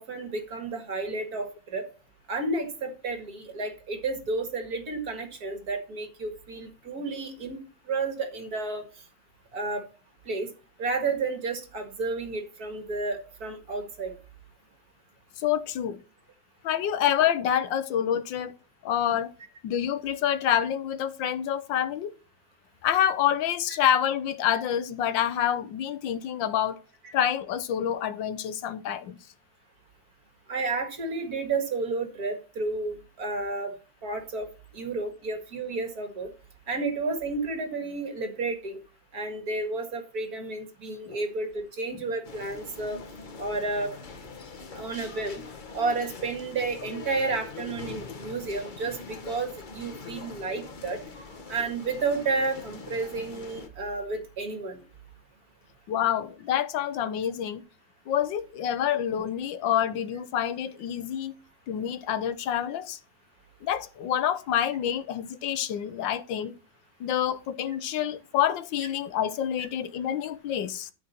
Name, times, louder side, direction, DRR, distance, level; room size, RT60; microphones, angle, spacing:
voice 1, 0.0-1.8 2.3-7.6 7.9-8.8 9.5-9.8 10.2-10.5 10.8-14.1 27.0-27.1 30.5-33.7 34.0-34.5 34.7-36.3 36.7-38.8 39.1-43.0 43.4-43.9 44.7-45.4 45.7-51.0 51.5-54.8 67.6-67.7, right 3 dB, 55° right, 2.3 m, -31 dB
voice 2, 15.4-16.0 16.6-18.5 18.8-19.3 19.6-22.1 22.8-26.8 27.1-29.2 41.1-41.2 41.9-42.0 44.7-44.9 55.9-57.6 58.1-61.3 61.7-63.0 63.6-66.5 67.0-70.9, left 10 dB, 85° left, 1.5 m, -27 dB
sound 1, 42.2-53.7, left 4 dB, 35° left, 0.9 m, -43 dB
13.0 x 5.2 x 4.4 m
omnidirectional pair, 2.0 m